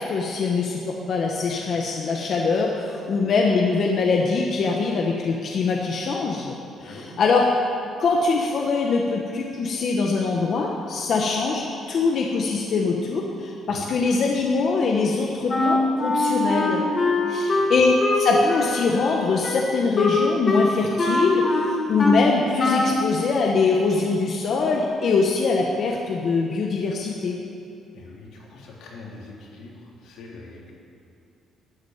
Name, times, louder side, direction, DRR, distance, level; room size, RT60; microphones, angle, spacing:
voice 1, 0.0-6.5 6.8-7.5 8.0-16.8 17.3-27.4, left 4 dB, 45° left, 0 dB, 1.1 m, -23 dB
voice 2, 6.8-7.2 13.7-13.9 17.4-17.8 27.9-30.7, left 3 dB, 80° left, -3 dB, 3.4 m, -43 dB
Wind instrument woodwind instrument, 15.5-22.3 22.6-23.0, left 2 dB, 25° left, 1.4 m, -23 dB
12.5 x 8.7 x 9.3 m, 2.8 s
cardioid pair, 175°, 0 cm